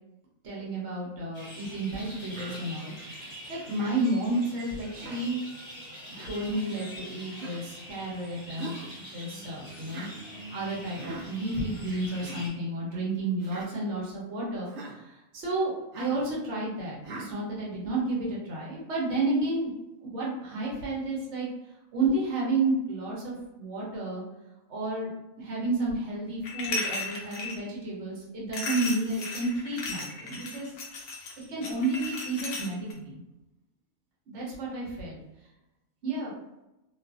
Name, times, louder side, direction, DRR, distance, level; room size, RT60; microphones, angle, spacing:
voice 1, 0.4-5.4 6.2-8.8 9.1-10.1 10.5-19.7 20.0-21.5 21.9-24.2 24.7-25.1 25.4-30.7 31.0-31.2 31.5-33.2 34.3-35.2 36.0-36.3, right 2 dB, 60° right, -4 dB, 1.0 m, -31 dB
sound 1, 1.3-12.5, equal, 25° left, 0.7 m, -44 dB
Human voice, 2.3-2.6 3.7-4.0 5.0-5.3 6.1-6.3 7.4-7.6 8.6-8.9 9.9-10.1 10.9-11.3 12.1-12.5 13.4-13.7 14.7-15.0 15.9-16.2 17.0-17.3, right 1 dB, 85° right, 1.0 m, -41 dB
sound 2, 26.4-27.6 28.5-32.9, left 3 dB, 65° left, 0.7 m, -35 dB
2.5 x 2.5 x 2.3 m, 0.95 s
omnidirectional pair, 1.4 m